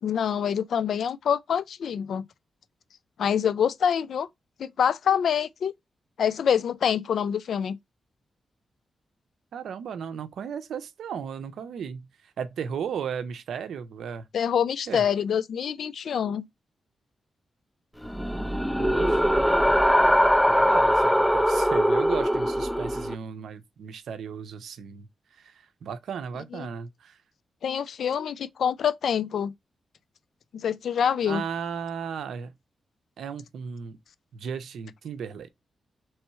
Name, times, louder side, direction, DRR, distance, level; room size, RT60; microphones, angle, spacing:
voice 1, 0.0-2.3 3.2-4.3 4.6-5.7 6.2-7.8 14.3-16.5 26.5-26.7 27.6-29.5 30.5-31.4, left 8 dB, 80° left, 0.3 m, -26 dB
voice 2, 9.5-12.1 12.4-14.2 14.9-15.0 18.8-19.5 20.5-25.1 25.4-25.5 25.8-27.2 31.3-32.5 33.2-34.0 34.3-35.5, right 7 dB, 85° right, 0.6 m, -35 dB
sound 1, 18.0-23.1, equal, 5° left, 0.4 m, -22 dB
3.1 x 3.0 x 4.4 m
cardioid pair, 55°, 0 cm